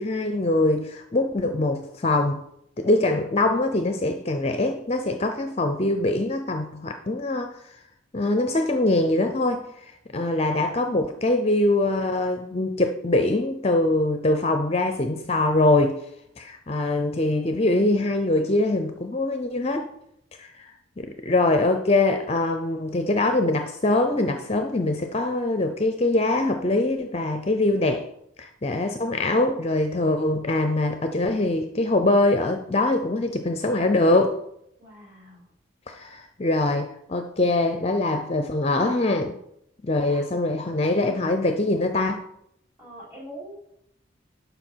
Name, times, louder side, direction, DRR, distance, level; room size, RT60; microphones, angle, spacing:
voice 1, 0.0-2.4 2.8-7.7 8.1-16.1 16.4-19.9 20.4-20.7 21.0-28.1 28.4-34.4 35.9-39.4 39.8-42.2, left 2 dB, 30° left, 6 dB, 0.6 m, -23 dB
voice 2, 34.8-35.5 39.9-40.2 42.8-43.5, right 1 dB, 15° right, -5 dB, 3.9 m, -43 dB
11.5 x 5.5 x 4.5 m, 0.75 s
head